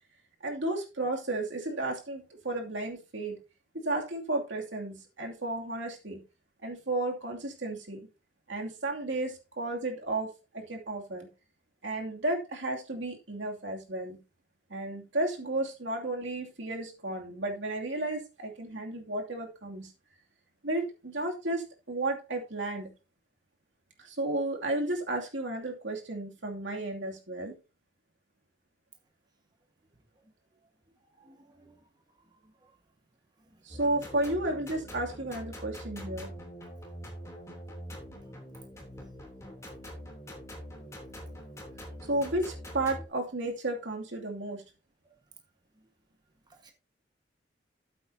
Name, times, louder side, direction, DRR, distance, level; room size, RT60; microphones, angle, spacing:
voice 1, 0.4-3.4 3.8-6.2 6.6-8.0 8.5-11.3 11.8-14.2 14.7-19.9 20.6-22.9 24.0-27.5 33.6-36.3 42.1-44.6, right 2 dB, 90° right, 2.7 m, -33 dB
voice 2, 31.1-31.7 32.6-32.7 39.1-39.2 40.8-40.9 46.5-46.7, right 2 dB, 25° right, 1.5 m, -59 dB
sound 1, 33.7-43.0, equal, 15° left, 3.2 m, -44 dB
13.0 x 8.4 x 2.8 m
head